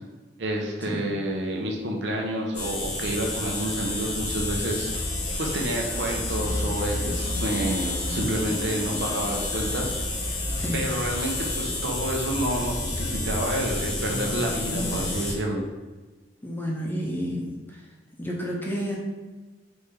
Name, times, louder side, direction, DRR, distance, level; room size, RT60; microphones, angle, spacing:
voice 1, 0.4-4.9 5.4-9.9 10.7-15.6, right 1 dB, 80° right, 0 dB, 0.8 m, -29 dB
sound 1, 2.5-15.3, left 2 dB, 75° left, 1.1 m, -29 dB
voice 2, 16.4-17.6 18.2-19.0, equal, 10° left, -2 dB, 0.6 m, -30 dB
4.0 x 3.2 x 3.7 m, 1.3 s
head